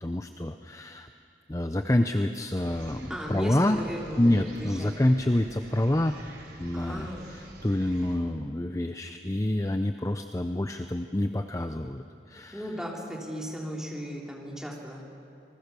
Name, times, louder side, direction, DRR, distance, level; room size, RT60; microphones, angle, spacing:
voice 1, 0.0-1.1 1.5-3.8 4.2-6.2 6.6-12.6, left 1 dB, 20° left, 7 dB, 0.6 m, -27 dB
sound 1, 2.6-8.2, right 1 dB, 65° right, 4.2 m, -48 dB
voice 2, 3.1-4.9 6.7-7.3 12.5-15.1, equal, 5° right, -2 dB, 3.3 m, -36 dB
27.0 x 20.5 x 6.9 m, 2.5 s
head